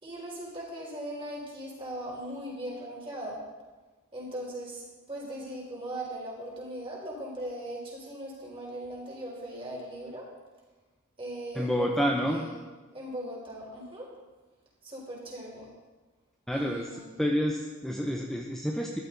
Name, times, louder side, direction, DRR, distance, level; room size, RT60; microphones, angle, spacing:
voice 1, 0.0-3.4 4.1-10.3 11.2-12.5 12.9-14.1 14.8-15.7 16.5-17.1, right 1 dB, 25° right, -3 dB, 4.3 m, -39 dB
voice 2, 11.5-12.5 16.5-16.9 17.2-19.0, equal, ahead, 0 dB, 0.7 m, -28 dB
14.5 x 12.0 x 4.0 m, 1.2 s
head